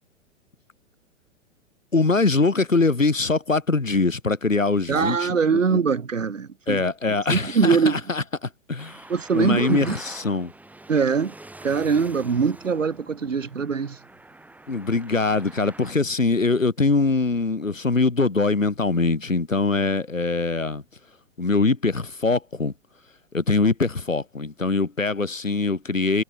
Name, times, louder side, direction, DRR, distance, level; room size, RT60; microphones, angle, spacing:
voice 1, 1.9-5.8 6.7-9.0 9.3-10.5 14.7-20.8 21.4-22.7 23.3-26.2, left 3 dB, 85° left, 2.1 m, -23 dB
voice 2, 4.9-6.8 7.3-8.0 9.1-10.0 10.9-11.3 11.6-14.0, right 5 dB, 75° right, 2.6 m, -22 dB
Traffic noise roadway noise, 8.8-15.9, right 2 dB, 5° right, 3.7 m, -45 dB
figure-of-eight pair, 105°, 38 cm